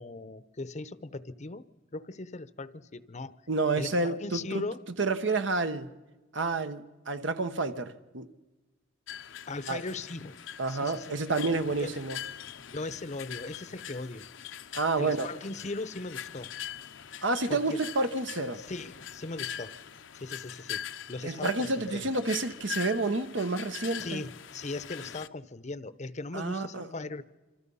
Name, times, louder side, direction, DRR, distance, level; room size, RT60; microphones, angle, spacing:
voice 1, 0.0-1.7 1.9-3.4 3.8-4.8 9.5-10.4 10.7-11.2 11.8-12.0 12.7-14.2 15.0-16.5 17.5-17.8 18.5-19.8 20.1-22.1 24.0-27.2, left 2 dB, 35° left, 0.8 m, -38 dB
voice 2, 3.5-4.6 5.0-5.9 6.3-8.3 9.7-9.8 10.6-12.2 14.7-15.3 17.2-18.6 21.2-24.2 26.3-26.9, right 3 dB, 65° right, 1.2 m, -29 dB
sound 1, 9.1-25.3, left 9 dB, 70° left, 0.8 m, -42 dB
27.0 x 26.0 x 5.6 m
head